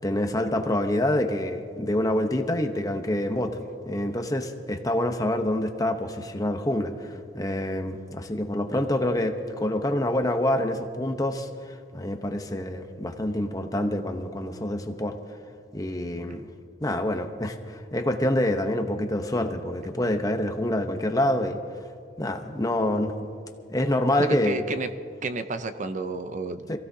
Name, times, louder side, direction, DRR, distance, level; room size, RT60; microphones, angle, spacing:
voice 1, 0.0-3.6 3.8-15.2 15.7-16.5 16.8-21.6 22.2-23.1 23.7-24.6 26.7-26.8, left 1 dB, 20° left, 6 dB, 0.9 m, -26 dB
voice 2, 24.2-24.9 25.2-26.6, right 3 dB, 40° right, 10 dB, 0.6 m, -30 dB
27.0 x 15.5 x 2.8 m, 2.2 s
head